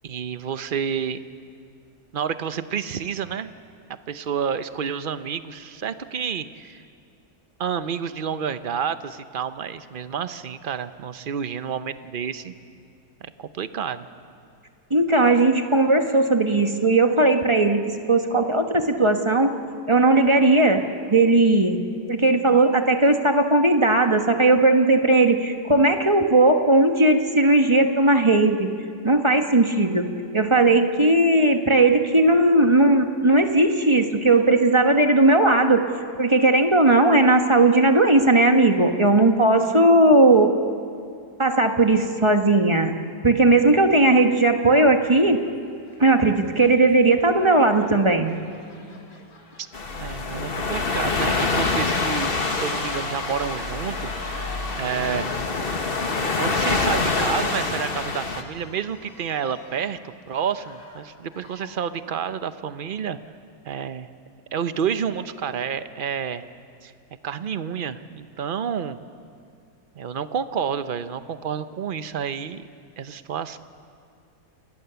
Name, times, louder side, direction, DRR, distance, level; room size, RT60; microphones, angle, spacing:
voice 1, 0.0-1.2 2.1-3.5 4.1-6.8 7.6-12.5 13.2-14.1 49.6-49.7 50.0-55.6 56.4-63.2 63.6-64.1 64.5-66.5 66.8-66.9 67.2-69.0 70.0-72.7 73.0-73.6, right 7 dB, 45° right, 12 dB, 0.7 m, -29 dB
voice 2, 14.9-17.8 18.1-19.5 19.9-20.8 21.1-21.8 22.1-28.7 29.0-35.9 36.2-40.5 41.4-42.9 43.2-45.4 46.0-48.3, right 2 dB, 20° right, 5 dB, 1.2 m, -17 dB
sound 1, 45.3-45.5 45.8-61.8, left 2 dB, 60° left, 3.0 m, -42 dB
sound 2, 49.7-58.4, left 3 dB, 35° left, 1.5 m, -26 dB
29.5 x 20.5 x 6.9 m, 2.4 s
omnidirectional pair, 1.7 m